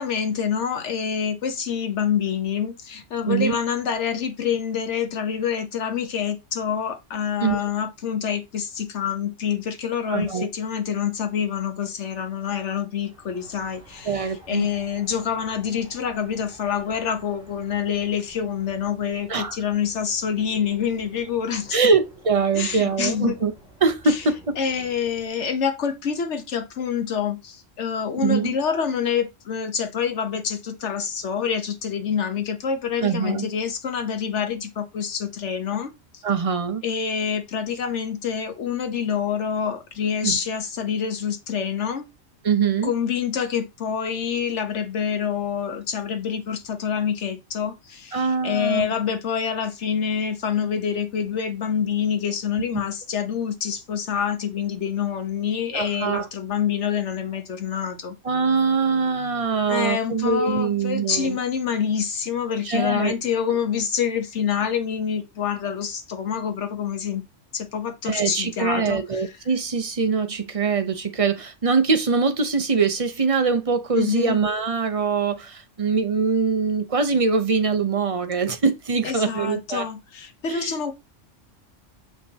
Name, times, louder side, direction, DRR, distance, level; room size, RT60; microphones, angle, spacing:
voice 1, 0.0-21.8 22.5-23.4 24.1-24.2 24.6-36.2 36.8-42.1 42.8-58.1 59.7-67.2 67.5-69.2 73.9-74.4 79.0-80.9, left 7 dB, 65° left, 1.3 m, -26 dB
voice 2, 3.3-3.6 7.4-7.6 10.1-10.5 14.0-14.7 19.3-19.6 21.7-23.5 23.8-24.6 28.2-28.6 33.0-33.5 36.2-36.8 40.2-40.4 42.4-42.9 48.1-48.9 55.7-56.3 58.2-61.4 62.6-63.1 68.0-79.8 80.5-80.7, right 5 dB, 30° right, 0.8 m, -23 dB
sound 1, 13.0-25.3, equal, 5° right, 2.4 m, -51 dB
6.1 x 5.8 x 2.9 m
omnidirectional pair, 1.3 m